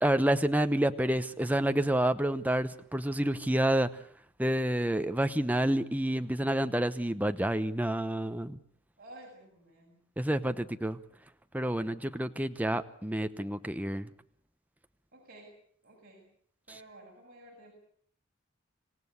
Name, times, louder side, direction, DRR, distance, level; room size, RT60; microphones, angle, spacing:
voice 1, 0.0-3.9 4.4-8.6 10.2-11.0 11.5-14.1, right 1 dB, 10° right, 9 dB, 0.9 m, -28 dB
voice 2, 9.0-10.0 15.1-15.5 15.8-16.3 16.7-17.7, right 1 dB, 50° right, -2 dB, 7.6 m, -52 dB
26.5 x 16.5 x 8.2 m, 0.62 s
head